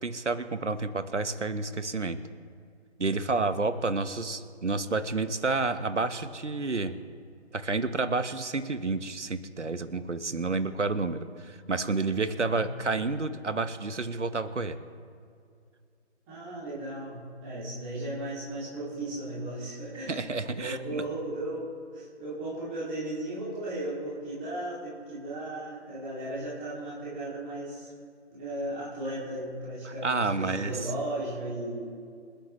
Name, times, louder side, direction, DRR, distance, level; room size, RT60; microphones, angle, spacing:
voice 1, 0.0-2.2 3.0-6.9 7.5-14.8 20.1-20.8 29.8-30.8, right 3 dB, 80° right, 11 dB, 1.2 m, -30 dB
voice 2, 16.3-20.2 20.5-27.9 28.3-32.0, right 1 dB, 10° right, -10 dB, 2.5 m, -36 dB
26.5 x 10.0 x 3.1 m, 2.3 s
figure-of-eight pair, 160°, 35 cm